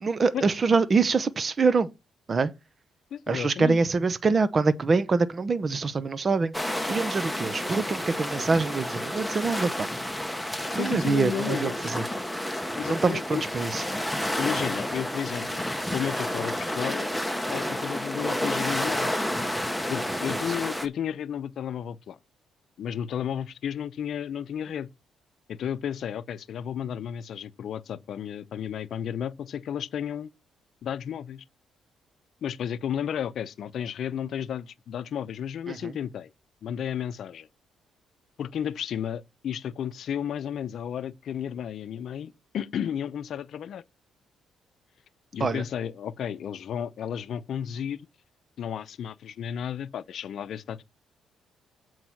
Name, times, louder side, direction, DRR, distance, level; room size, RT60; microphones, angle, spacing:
voice 1, 0.0-1.9 2.3-2.5 3.3-6.5 6.9-9.9 10.7-12.0 12.9-13.8 35.7-35.9 45.4-45.6, right 4 dB, 35° right, 0.8 m, -25 dB
voice 2, 3.1-3.8 10.8-11.8 12.8-13.4 14.4-15.6 15.9-17.1 17.5-19.2 19.9-22.2 22.8-24.9 25.5-30.3 30.8-31.4 32.4-36.3 36.6-37.5 38.4-43.8 45.3-48.0 48.6-50.8, left 9 dB, 65° left, 0.6 m, -33 dB
sound 1, 6.5-20.9, left 1 dB, ahead, 1.0 m, -30 dB
7.9 x 4.6 x 5.8 m
cardioid pair, 90°, 0 cm